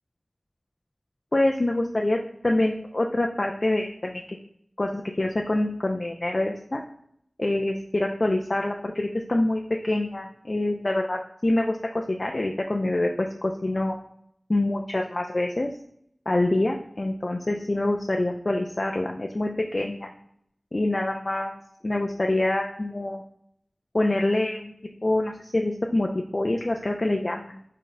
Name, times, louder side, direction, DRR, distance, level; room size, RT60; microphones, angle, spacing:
voice 1, 1.3-4.2 4.8-6.8 7.4-13.9 14.5-15.7 16.3-20.1 20.7-21.6 21.8-23.2 23.9-24.7 25.0-27.6, left 1 dB, 50° left, 2 dB, 0.4 m, -26 dB
4.1 x 3.7 x 3.2 m, 0.70 s
wide cardioid pair, 55°, 0 cm